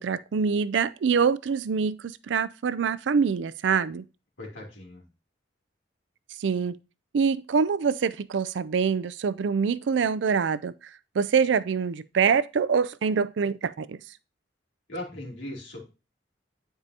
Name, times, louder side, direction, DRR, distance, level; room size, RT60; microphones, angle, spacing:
voice 1, 0.0-4.0 6.4-6.8 7.1-14.0, right 6 dB, 80° right, 0.4 m, -25 dB
voice 2, 4.4-5.0 14.9-15.8, left 1 dB, 90° left, 2.8 m, -38 dB
9.7 x 4.9 x 2.7 m
head